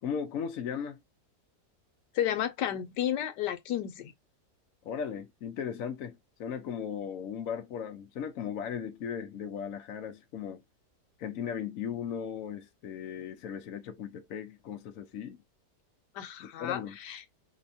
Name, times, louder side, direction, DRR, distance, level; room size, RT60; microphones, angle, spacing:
voice 1, 0.0-1.0 4.8-10.6 11.2-15.4 16.4-17.0, left 7 dB, 60° left, 1.0 m, -37 dB
voice 2, 2.1-4.1 16.1-17.2, left 11 dB, 85° left, 1.4 m, -32 dB
5.2 x 2.2 x 2.7 m
omnidirectional pair, 1.8 m